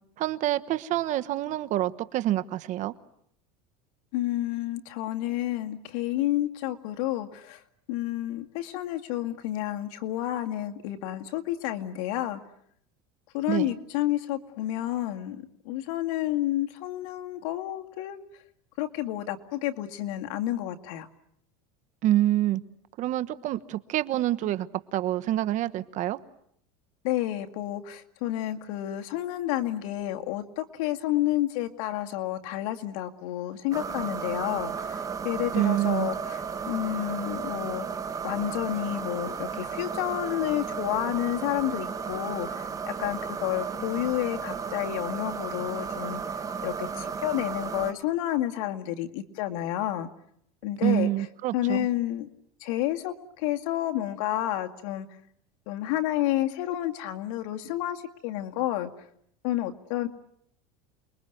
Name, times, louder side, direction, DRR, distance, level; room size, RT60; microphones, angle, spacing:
voice 1, 0.2-2.9 13.5-13.7 22.0-22.6 23.0-26.2 35.5-36.1 50.8-51.9, right 14 dB, 45° right, 12 dB, 1.2 m, -27 dB
voice 2, 4.1-7.6 7.9-12.4 13.3-18.2 18.8-21.1 27.0-36.4 36.7-37.9 38.2-46.2 46.6-50.1 50.6-51.1 51.5-52.3 52.6-55.1 55.7-58.9 59.4-60.1, left 14 dB, 70° left, 5 dB, 2.2 m, -30 dB
sound 1, 33.7-47.9, right 6 dB, 20° right, 1.9 m, -34 dB
29.0 x 22.0 x 9.4 m, 0.70 s
supercardioid pair, 140°, 18 cm